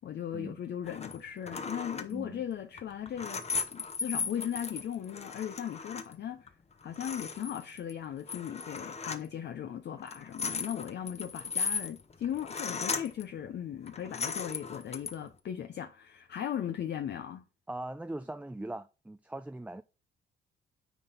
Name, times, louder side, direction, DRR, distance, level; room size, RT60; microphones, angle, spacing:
voice 1, 0.0-3.4 3.7-6.5 6.8-17.4, left 9 dB, 60° left, 0.7 m, -38 dB
sound 1, 0.8-1.2 1.5-2.1 2.8-6.1 6.5-6.6 6.8-7.9 8.3-9.3 10.0-13.2 13.8-15.2, left 5 dB, 35° left, 1.0 m, -37 dB
voice 2, 2.1-2.4 17.7-19.8, right 1 dB, 5° right, 0.4 m, -40 dB
9.3 x 4.2 x 5.2 m
cardioid pair, 90°, 20 cm